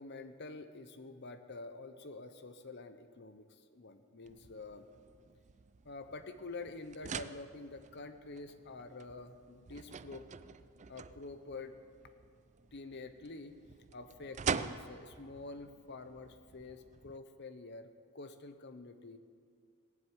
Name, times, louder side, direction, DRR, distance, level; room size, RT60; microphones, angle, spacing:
voice 1, 0.0-4.9 5.8-10.3 10.9-11.7 12.7-13.6 13.9-19.2, left 3 dB, 50° left, 9 dB, 0.8 m, -47 dB
sound 1, 4.2-17.2, right 6 dB, 35° right, 0.4 m, -45 dB
19.0 x 7.7 x 9.4 m, 2.3 s
head